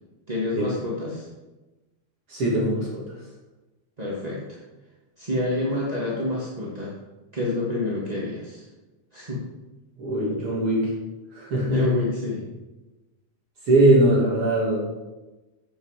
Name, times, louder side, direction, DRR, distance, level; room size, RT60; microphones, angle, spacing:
voice 1, 0.3-1.3 4.0-4.6 5.2-7.0 7.3-8.6 9.1-9.5 11.7-12.4, left 1 dB, 15° right, -6 dB, 1.6 m, -28 dB
voice 2, 2.3-3.0 10.0-10.9 11.3-11.8 13.7-14.8, right 1 dB, 45° right, -5 dB, 3.2 m, -21 dB
11.5 x 8.6 x 5.0 m, 1.1 s
omnidirectional pair, 3.5 m